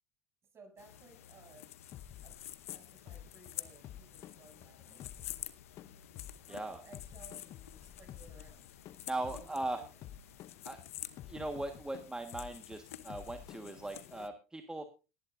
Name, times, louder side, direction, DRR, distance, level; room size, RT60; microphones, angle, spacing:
voice 1, 0.5-1.7 2.2-2.4 2.7-5.4 6.4-8.7 9.1-10.0, right 3 dB, 35° right, 3 dB, 7.6 m, -59 dB
sound 1, 0.8-14.3, left 12 dB, 90° left, 0.9 m, -49 dB
sound 2, 1.9-14.3, left 11 dB, 50° left, 0.9 m, -52 dB
voice 2, 6.5-6.8 9.1-9.9 10.6-10.8 11.2-14.9, right 2 dB, 10° right, 6 dB, 1.6 m, -39 dB
19.0 x 11.5 x 2.6 m, 0.30 s
hypercardioid pair, 85°, 7 cm